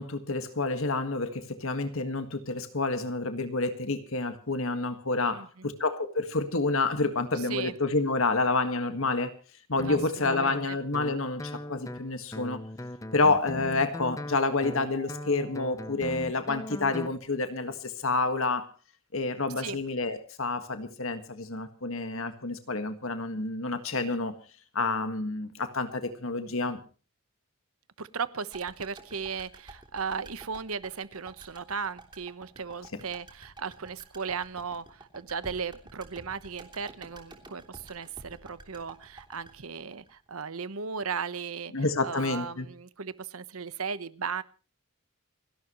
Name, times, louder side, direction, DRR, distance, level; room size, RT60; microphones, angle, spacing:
voice 1, 0.0-9.3 9.7-12.6 13.1-18.7 19.1-24.3 24.7-26.8 41.7-42.7, left 3 dB, 65° left, 9 dB, 1.7 m, -29 dB
voice 2, 5.3-5.7 7.3-7.7 9.8-10.0 10.3-10.8 13.6-13.7 19.6-19.8 28.0-44.4, right 5 dB, 75° right, 15 dB, 1.1 m, -36 dB
Guitar, 9.8-17.2, left 1 dB, 15° left, 0.7 m, -39 dB
Mallet percussion, 14.6-17.0, equal, 85° left, 1.9 m, -51 dB
sound 1, 28.5-40.7 41.0-41.1, right 2 dB, 20° right, 3.2 m, -50 dB
29.5 x 12.0 x 3.1 m, 0.36 s
head